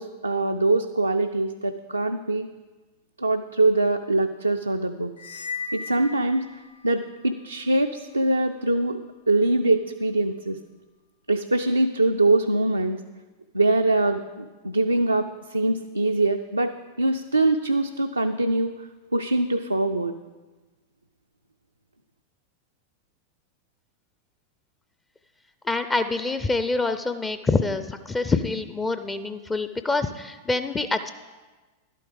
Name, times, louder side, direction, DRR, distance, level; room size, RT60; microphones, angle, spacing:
voice 1, 0.0-2.5 3.2-5.1 5.7-6.5 6.8-10.6 11.3-13.0 13.5-18.8 19.1-20.1, right 2 dB, 85° right, 5 dB, 0.4 m, -23 dB
sound 1, 5.2-7.0, left 4 dB, 70° left, 0.6 m, -36 dB
voice 2, 25.6-31.1, left 3 dB, 15° left, 10 dB, 0.4 m, -26 dB
11.5 x 8.4 x 5.0 m, 1.3 s
figure-of-eight pair, 90°, 0 cm